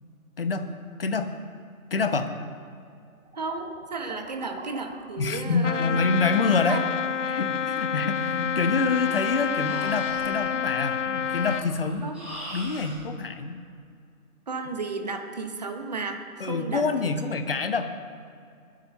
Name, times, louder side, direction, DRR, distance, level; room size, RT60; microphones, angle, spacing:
voice 1, 0.4-0.7 1.0-1.3 1.9-2.3 5.2-6.8 7.3-12.0 12.5-13.6 16.4-17.9, left 4 dB, 40° left, 8 dB, 1.1 m, -26 dB
sound 1, 3.1-5.3 5.7-6.0 9.5-9.6 9.9-10.3, right 2 dB, 50° right, 3.3 m, -46 dB
voice 2, 3.4-6.0 6.7-6.9 12.0-12.3 14.5-16.8, right 3 dB, 30° right, 6 dB, 1.1 m, -33 dB
Trumpet, 5.6-11.7, left 8 dB, 60° left, 0.5 m, -28 dB
Breathing, 8.7-13.0, equal, 5° right, 3.0 m, -42 dB
21.5 x 8.0 x 5.5 m, 2.3 s
figure-of-eight pair, 160°, 43 cm